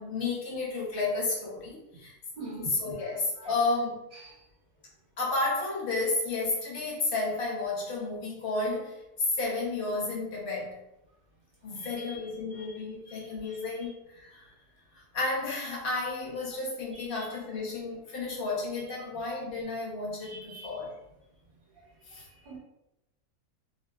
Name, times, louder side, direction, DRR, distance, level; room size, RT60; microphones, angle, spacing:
voice 1, 0.0-2.1 2.6-4.1 5.2-9.0 9.3-10.8 11.6-14.5 15.1-20.9 22.1-22.2, left 3 dB, 45° left, -4 dB, 0.8 m, -32 dB
voice 2, 2.4-2.7 3.0-3.5 4.2-4.3 11.7-12.1 12.5-12.7 13.1-13.6 16.9-17.3 19.0-19.1 20.2-20.8 22.1-22.6, right 1 dB, 50° right, -6 dB, 0.7 m, -45 dB
2.6 x 2.6 x 2.2 m, 0.88 s
omnidirectional pair, 1.6 m